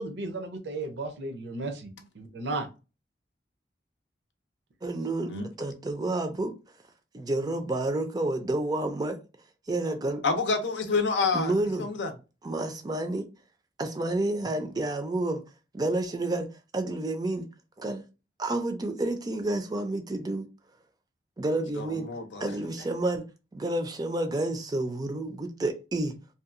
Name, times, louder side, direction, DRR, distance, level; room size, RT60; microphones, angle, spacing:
voice 1, 0.0-1.9 2.2-2.7, right 2 dB, 75° right, 0.6 m, -34 dB
voice 2, 4.8-6.5 7.1-9.2 9.7-10.2 11.3-11.9 12.4-13.3 13.8-15.4 15.7-16.5 16.7-17.5 17.8-18.0 18.4-20.5 21.4-22.1 22.4-23.2 23.5-26.2, right 2 dB, 20° right, 0.4 m, -29 dB
voice 3, 10.2-12.1 21.7-22.5, left 4 dB, 90° left, 0.5 m, -28 dB
2.7 x 2.3 x 2.4 m
head